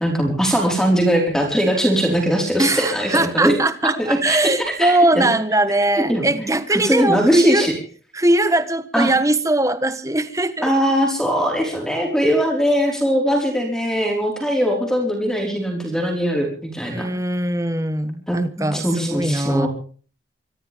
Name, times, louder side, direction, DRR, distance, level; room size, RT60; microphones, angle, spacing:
voice 1, 0.0-3.5 3.8-5.3 5.9-7.7 8.9-9.1 10.6-17.1 18.3-19.7, equal, 5° left, 1 dB, 4.7 m, -21 dB
voice 2, 2.6-7.7 8.1-10.7 16.9-19.7, right 1 dB, 15° right, 11 dB, 1.4 m, -20 dB
25.0 x 15.5 x 3.6 m, 0.40 s
head